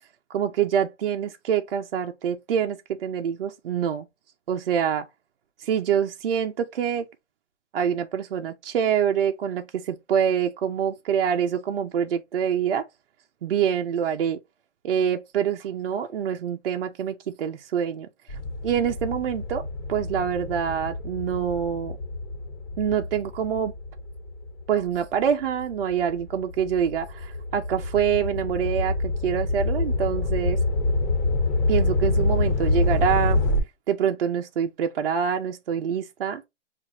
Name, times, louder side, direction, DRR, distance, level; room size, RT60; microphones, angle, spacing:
voice 1, 0.3-4.1 4.5-5.1 5.6-7.1 7.7-12.8 13.4-14.4 14.8-18.4 18.6-22.0 22.8-23.7 24.7-30.6 31.7-33.4 33.9-36.4, right 8 dB, 55° right, 0.5 m, -26 dB
sound 1, 18.3-25.0 25.6-33.6, left 2 dB, 45° left, 1.5 m, -26 dB
5.9 x 2.5 x 2.8 m
hypercardioid pair, 170°, 35 cm